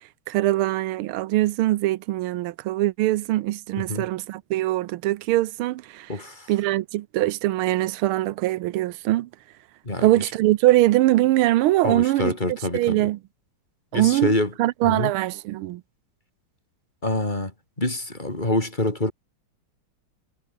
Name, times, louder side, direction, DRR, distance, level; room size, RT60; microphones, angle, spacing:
voice 1, 0.3-6.1 6.5-9.3 10.0-13.2 13.9-14.3 14.6-15.8, right 16 dB, 85° right, 1.6 m, -22 dB
voice 2, 3.8-4.1 6.1-6.5 9.9-10.1 11.8-13.1 13.9-14.5 14.8-15.1 17.0-17.5 17.8-19.1, left 2 dB, 20° left, 3.9 m, -26 dB
omnidirectional pair, 2.3 m